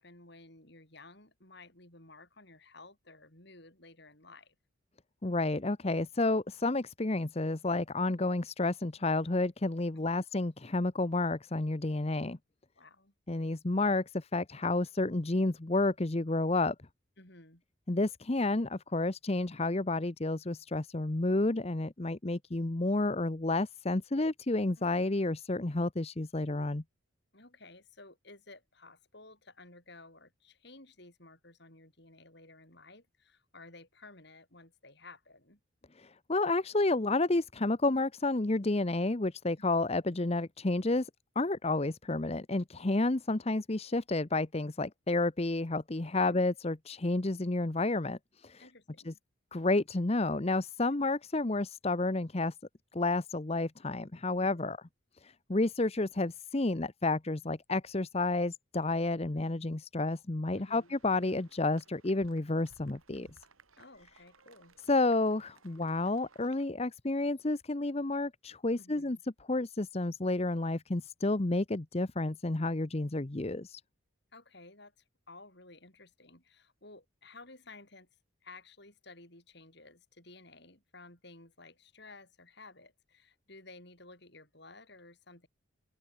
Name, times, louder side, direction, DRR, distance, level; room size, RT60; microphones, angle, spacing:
voice 1, 0.0-4.6 10.1-10.3 12.8-13.1 17.2-17.6 24.8-25.1 27.3-35.6 46.2-46.5 48.6-49.1 54.4-54.7 60.6-60.9 63.8-64.8 68.8-69.2 74.3-78.1 78.4-85.5, left 2 dB, 55° left, 7.5 m, -54 dB
voice 2, 5.2-12.4 13.3-16.7 17.9-26.8 36.0-41.1 41.4-48.7 49.1-49.2 49.5-52.5 52.9-54.8 55.2-63.3 64.9-69.2 69.5-73.8, left 2 dB, 30° left, 0.8 m, -30 dB
sound 1, 60.7-66.7, right 3 dB, 90° right, 6.3 m, -62 dB
open air
head